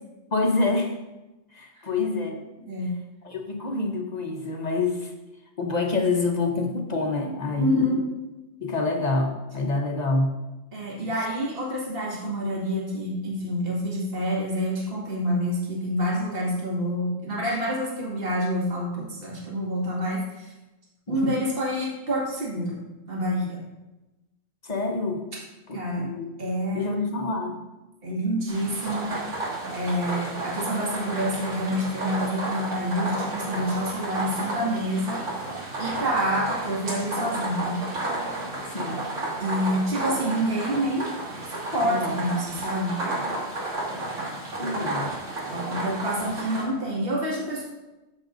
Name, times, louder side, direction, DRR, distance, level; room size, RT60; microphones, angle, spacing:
voice 1, 0.3-0.9 1.5-2.4 3.2-5.1 5.6-8.0 8.6-10.3 21.1-21.4 24.6-25.2 25.7-26.3 26.7-27.6 38.6-39.0 41.8-42.2 42.5-42.6 44.6-45.2, left 3 dB, 35° left, 2 dB, 1.0 m, -27 dB
voice 2, 7.6-8.0 10.7-20.5 21.1-22.8 23.1-23.6 25.7-26.1 26.4-26.9 28.0-29.1 29.7-35.2 35.8-37.8 39.4-41.1 41.7-43.0 45.5-47.6, equal, 45° right, -5 dB, 2.2 m, -27 dB
sound 1, 28.5-46.6, right 2 dB, 70° right, 2.5 m, -32 dB
13.0 x 7.4 x 2.6 m, 1.0 s
omnidirectional pair, 1.3 m